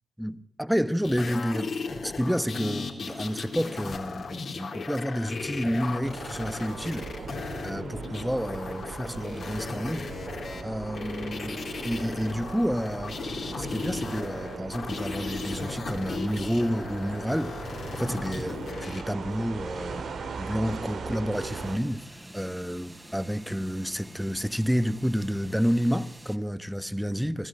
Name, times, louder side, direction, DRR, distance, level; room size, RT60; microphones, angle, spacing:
voice 1, 0.2-1.7 2.0-7.0 7.6-10.1 10.6-13.2 13.6-17.5 17.9-20.0 20.4-22.0 22.3-27.5, equal, ahead, 1.3 m, -30 dB
sound 1, 1.0-19.0 20.4-20.5, left 4 dB, 65° left, 3.9 m, -36 dB
sound 2, 6.0-21.8, right 5 dB, 75° right, 2.4 m, -39 dB
sound 3, 21.3-26.4, right 1 dB, 20° right, 3.6 m, -48 dB
26.0 x 12.5 x 8.9 m
supercardioid pair, 45°, 0 cm